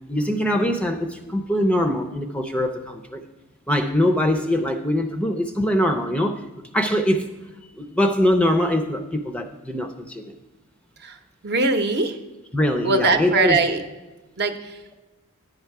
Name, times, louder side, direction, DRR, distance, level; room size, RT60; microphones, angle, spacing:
voice 1, 0.1-3.2 3.7-6.4 6.7-7.3 7.8-10.3 12.5-13.6, left 1 dB, 5° left, 6 dB, 0.5 m, -22 dB
voice 2, 11.4-12.2 12.8-13.8 14.4-14.8, right 3 dB, 50° right, 6 dB, 0.8 m, -21 dB
10.5 x 6.5 x 4.7 m, 1.2 s
head